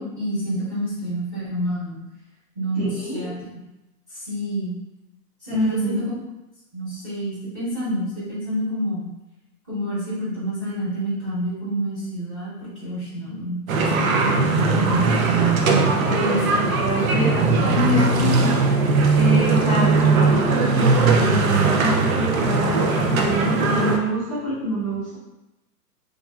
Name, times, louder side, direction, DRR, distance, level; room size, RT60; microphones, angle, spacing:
voice 1, 0.0-2.0 2.5-3.3 4.1-4.7 5.4-6.1 6.7-9.1 9.7-15.1 15.7-16.7, right 1 dB, 10° right, -14 dB, 0.7 m, -28 dB
voice 2, 2.8-3.2 5.5-6.1 16.1-18.5 19.1-25.2, right 1 dB, 25° left, -13 dB, 0.4 m, -25 dB
sound 1, 13.7-24.0, right 3 dB, 60° right, 0.5 m, -19 dB
3.3 x 2.3 x 2.3 m, 0.96 s
hypercardioid pair, 165°, 47 cm